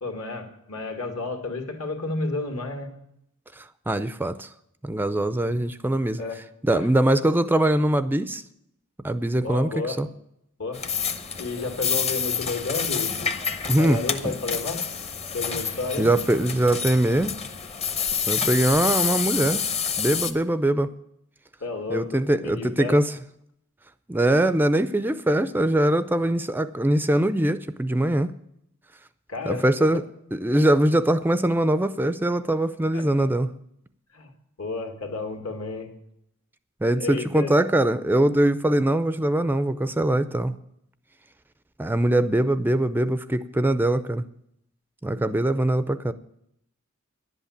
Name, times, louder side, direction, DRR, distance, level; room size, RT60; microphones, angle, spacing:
voice 1, 0.0-2.9 6.2-6.4 6.7-6.9 9.4-10.0 10.6-10.8 11.4-13.1 13.7-14.9 15.3-16.1 21.6-22.2 22.4-23.0 29.3-29.7 29.9-30.0 32.9-33.3 34.1-34.3 34.6-35.9 37.0-37.5, left 3 dB, 70° left, 5 dB, 2.3 m, -31 dB
voice 2, 3.6-4.5 4.8-6.2 6.6-8.4 9.0-10.1 13.7-14.0 16.0-17.3 18.3-19.6 20.0-20.9 21.9-23.1 24.1-28.3 29.5-30.0 30.3-33.5 36.8-40.5 41.8-44.2 45.0-46.1, right 1 dB, 10° right, 13 dB, 0.4 m, -22 dB
sound 1, 10.7-20.3, left 6 dB, 30° left, 0.8 m, -28 dB
11.0 x 8.2 x 8.6 m, 0.75 s
head